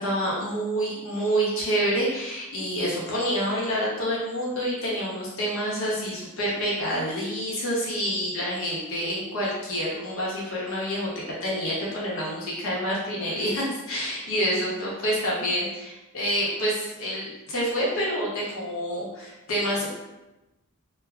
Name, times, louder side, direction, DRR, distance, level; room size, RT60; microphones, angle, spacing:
voice 1, 0.0-11.1 11.4-19.9, equal, 65° left, -6 dB, 0.9 m, -27 dB
3.1 x 2.1 x 2.4 m, 1.0 s
head